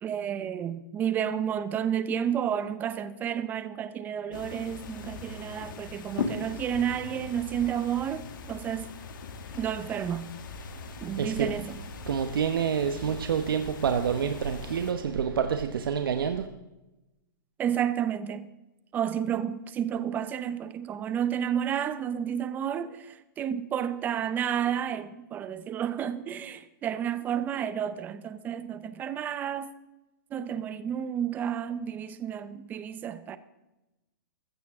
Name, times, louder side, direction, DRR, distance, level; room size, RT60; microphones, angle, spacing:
voice 1, 0.0-8.2 8.5-8.9 9.5-10.3 11.0-11.8 17.6-18.5 18.9-29.7 30.3-33.4, right 9 dB, 15° right, 0.6 m, -31 dB
sound 1, 4.3-14.9, left 5 dB, 65° left, 2.1 m, -40 dB
voice 2, 11.2-11.5 12.1-16.5, right 7 dB, 80° right, 1.0 m, -28 dB
15.0 x 14.0 x 3.6 m
hypercardioid pair, 155°, 12 cm